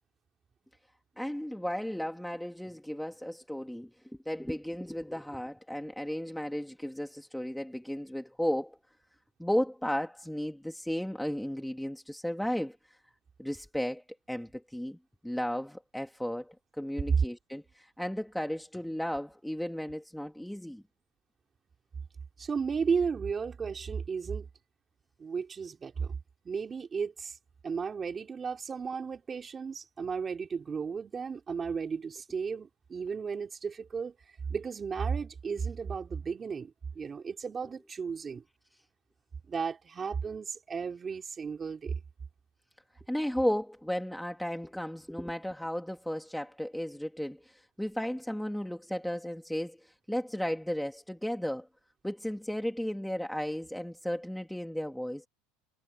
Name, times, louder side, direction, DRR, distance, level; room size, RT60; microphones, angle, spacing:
voice 1, 1.2-8.8 9.4-13.0 13.4-15.0 15.2-20.8 43.1-51.7 52.0-55.3, equal, ahead, 2.3 m, -34 dB
voice 2, 22.4-24.5 25.2-26.2 26.4-27.4 27.6-34.1 34.5-38.4 39.5-42.0, right 5 dB, 20° right, 4.3 m, -34 dB
supercardioid pair, 140°, 0 cm